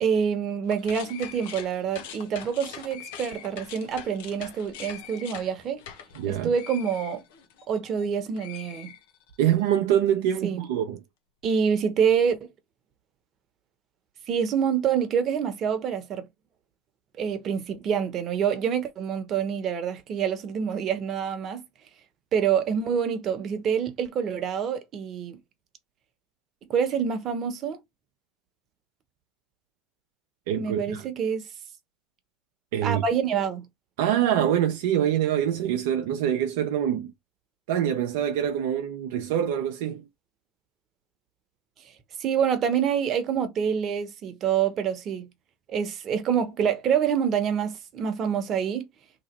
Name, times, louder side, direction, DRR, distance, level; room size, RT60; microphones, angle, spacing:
voice 1, 0.0-5.8 6.3-7.2 7.7-8.9 10.4-10.6 11.4-12.5 14.3-16.2 17.2-21.6 22.3-25.4 26.7-27.8 30.6-31.5 32.8-33.6 42.2-45.3 45.7-48.8, right 7 dB, 45° right, 1.0 m, -26 dB
sound 1, 0.6-8.1 8.4-9.5, left 9 dB, 75° left, 0.8 m, -43 dB
voice 2, 6.1-6.5 9.4-11.0 30.5-31.0 32.7-33.0 34.0-37.1 37.7-40.1, right 10 dB, 75° right, 0.6 m, -25 dB
3.0 x 2.7 x 4.3 m
hypercardioid pair, 85°, 0 cm